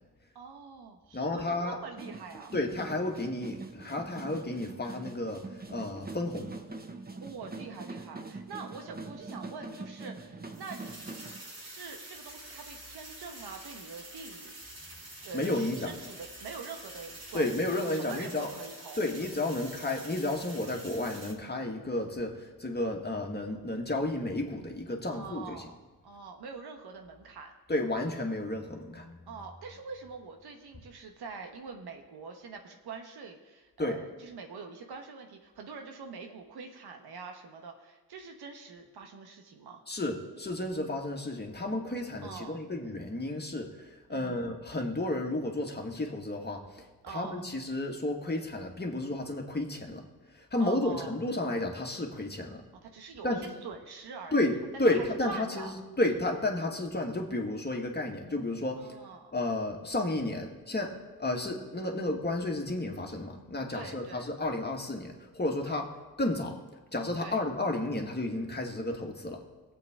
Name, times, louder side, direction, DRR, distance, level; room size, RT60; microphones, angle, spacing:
voice 1, 0.3-2.5 7.2-10.8 11.6-14.6 15.2-19.0 25.1-25.8 26.0-27.5 29.3-39.8 42.2-42.6 44.1-44.4 47.0-47.5 50.6-51.1 52.8-54.4 54.8-55.7 58.8-59.3 63.7-64.3 65.6-65.8 67.2-67.4, right 5 dB, 75° right, 4 dB, 1.3 m, -44 dB
voice 2, 1.1-1.8 2.5-6.5 15.3-15.9 17.3-18.5 19.0-25.7 27.7-29.3 33.8-34.0 39.9-50.1 50.3-52.6 53.2-53.4 54.3-58.9 59.3-65.9 66.2-66.6 66.9-69.4, left 2 dB, 25° left, 1 dB, 1.9 m, -32 dB
sound 1, 2.0-11.4, right 3 dB, 25° right, 1.1 m, -43 dB
sound 2, 10.5-21.3, right 2 dB, 60° right, 3.5 m, -47 dB
18.0 x 7.9 x 3.8 m, 1.2 s
supercardioid pair, 55°, 38 cm